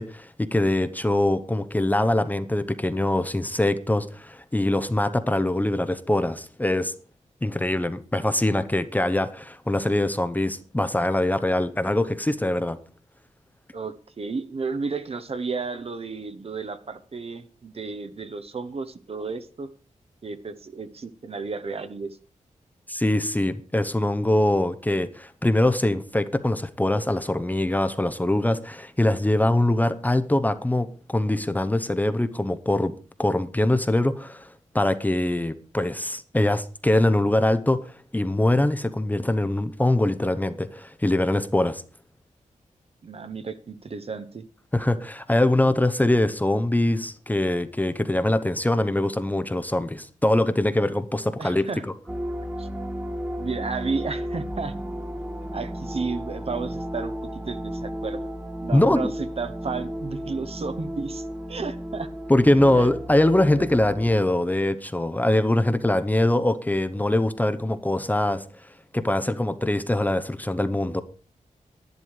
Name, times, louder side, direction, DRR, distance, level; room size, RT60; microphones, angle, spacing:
voice 1, 0.0-6.9 7.4-12.8 22.9-32.9 33.2-34.5 34.7-41.8 44.7-51.7 58.7-59.1 62.3-68.4 68.9-71.0, left 1 dB, 10° left, 0.8 m, -23 dB
voice 2, 13.7-19.7 20.2-22.2 43.0-44.5 51.4-51.8 52.6-52.7 53.4-54.7 55.5-58.2 58.6-62.1 62.7-62.9 63.6-63.7, right 4 dB, 50° right, 1.1 m, -32 dB
sound 1, 52.1-64.2, equal, 15° right, 1.2 m, -34 dB
11.0 x 10.5 x 4.8 m
wide cardioid pair, 95°, 13 cm